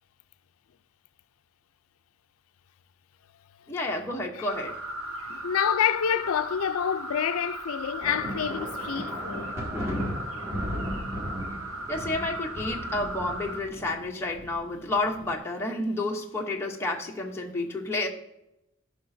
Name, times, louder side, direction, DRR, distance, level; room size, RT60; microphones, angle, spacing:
voice 1, 3.7-4.8 11.9-18.1, left 2 dB, 10° left, 0.8 m, -30 dB
sound 1, 4.5-13.6, right 1 dB, 75° right, 1.0 m, -37 dB
voice 2, 5.2-9.5, left 8 dB, 80° left, 0.4 m, -28 dB
sound 2, 8.0-15.3, equal, 15° right, 1.6 m, -36 dB
14.0 x 5.7 x 2.6 m
head